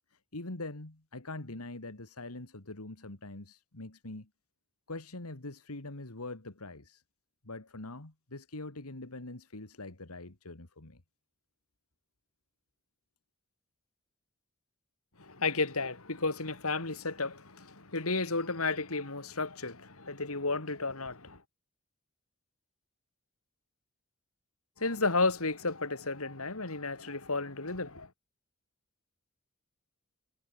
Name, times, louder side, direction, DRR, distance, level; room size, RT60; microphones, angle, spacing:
voice 1, 0.1-4.3 4.9-7.0 7.4-11.0, left 2 dB, 90° left, 2.4 m, -43 dB
voice 2, 15.2-21.4 24.8-28.1, left 3 dB, 75° left, 3.4 m, -32 dB
head